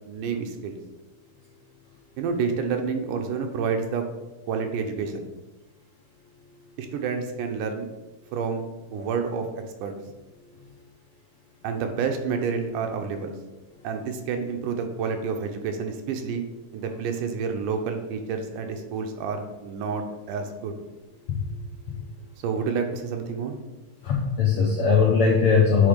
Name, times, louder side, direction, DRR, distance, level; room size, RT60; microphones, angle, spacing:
voice 1, 0.1-0.8 2.2-4.1 4.5-5.3 6.8-7.9 8.3-8.7 8.9-9.5 9.8-9.9 11.6-13.3 13.8-16.4 16.7-20.8 22.4-23.7, right 5 dB, 80° right, 5 dB, 2.2 m, -29 dB
voice 2, 24.0-25.9, left 5 dB, 75° left, -3 dB, 1.3 m, -20 dB
8.0 x 3.6 x 5.1 m, 1.1 s
omnidirectional pair, 3.8 m